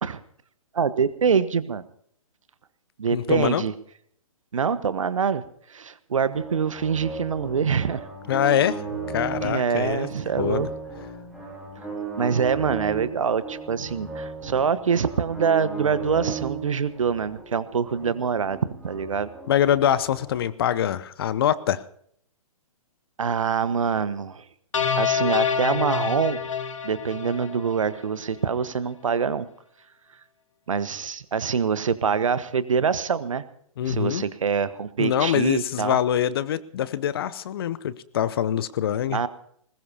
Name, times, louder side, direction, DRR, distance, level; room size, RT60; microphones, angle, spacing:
voice 1, 0.7-1.8 3.0-3.7 4.5-5.4 5.7-8.1 9.4-10.7 12.2-19.3 23.2-24.4 25.0-26.4 26.8-29.5 30.7-33.4 33.8-36.0 39.1-39.3, right 6 dB, 60° right, 14 dB, 1.3 m, -25 dB
voice 2, 3.1-3.6 8.3-8.8 9.1-10.1 10.4-10.7 19.5-21.8 33.8-34.2 35.0-39.2, left 10 dB, 40° left, 17 dB, 0.8 m, -24 dB
sound 1, 6.3-20.4, right 5 dB, ahead, 3.2 m, -36 dB
sound 2, 24.7-28.1, left 7 dB, 60° left, 1.7 m, -27 dB
21.0 x 20.0 x 2.8 m, 0.65 s
figure-of-eight pair, 125°, 19 cm